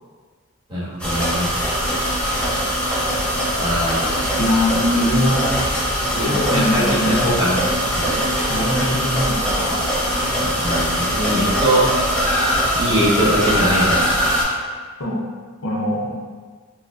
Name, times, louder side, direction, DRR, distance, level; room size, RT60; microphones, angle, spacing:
voice 1, 0.7-1.5 3.5-4.1 6.2-8.1 10.4-11.9 12.7-14.0, equal, 25° right, -11 dB, 1.2 m, -22 dB
sound 1, 1.0-14.4, equal, 5° left, 0.6 m, -21 dB
voice 2, 4.4-7.1 8.5-9.9 15.0-15.3 15.6-16.1, left 1 dB, 60° left, -3 dB, 0.5 m, -22 dB
4.8 x 2.0 x 2.4 m, 1.5 s
head